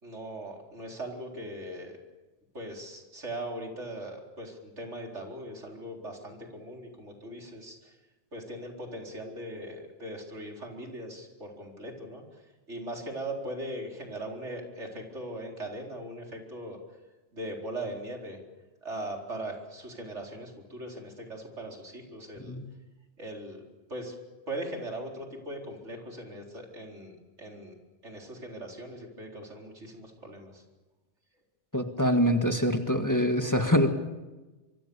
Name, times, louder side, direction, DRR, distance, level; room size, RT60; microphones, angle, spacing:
voice 1, 0.0-2.0 2.5-7.9 8.3-12.2 12.7-16.8 17.3-18.4 18.8-22.6 23.2-23.6 23.9-24.1 24.5-27.7 28.0-30.6, right 1 dB, 80° right, 1 dB, 4.5 m, -39 dB
voice 2, 31.7-33.9, equal, 15° left, 5 dB, 1.8 m, -25 dB
25.5 x 24.0 x 7.0 m, 1.2 s
omnidirectional pair, 1.2 m